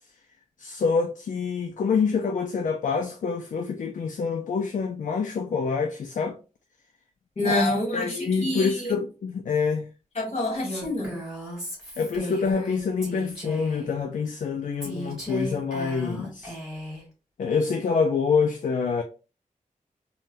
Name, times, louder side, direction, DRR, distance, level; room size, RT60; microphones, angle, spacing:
voice 1, 0.6-6.4 7.4-9.9 12.0-16.6 17.4-19.0, left 5 dB, 70° left, 0.4 m, -26 dB
voice 2, 7.4-8.9 10.1-11.2, left 1 dB, 50° left, 1.6 m, -27 dB
Female speech woman speaking, 10.6-13.9 14.8-17.0, equal, 5° right, 1.6 m, -36 dB
3.7 x 2.2 x 2.5 m
wide cardioid pair, 90°, 14 cm